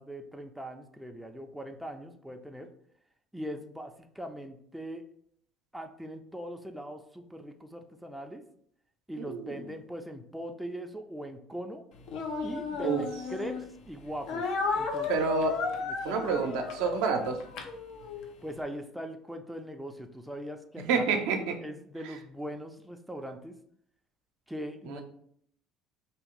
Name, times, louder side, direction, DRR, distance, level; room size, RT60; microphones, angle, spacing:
voice 1, 0.0-2.7 3.3-5.0 5.7-8.4 9.1-11.8 12.4-14.4 14.8-15.3 15.8-16.4 18.4-21.1 21.6-23.6 24.5-25.0, equal, 5° right, 5 dB, 0.4 m, -40 dB
voice 2, 9.2-9.6 12.8-13.1 15.1-15.6 16.0-17.4 20.9-21.6 24.8-25.0, right 5 dB, 80° right, 4 dB, 0.5 m, -28 dB
Speech, 12.1-13.6 14.3-18.3, left 5 dB, 70° left, 0.5 m, -33 dB
2.7 x 2.3 x 3.7 m, 0.67 s
supercardioid pair, 80°, 0 cm